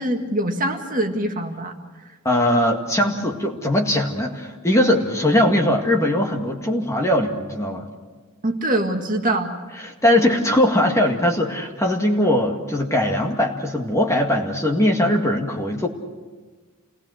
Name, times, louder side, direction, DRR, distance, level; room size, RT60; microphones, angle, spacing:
voice 1, 0.0-1.7 8.4-9.5, right 1 dB, 40° right, 3 dB, 1.9 m, -23 dB
voice 2, 2.2-7.9 9.8-15.9, left 1 dB, 15° left, 1 dB, 2.0 m, -20 dB
28.0 x 19.5 x 6.5 m, 1.3 s
head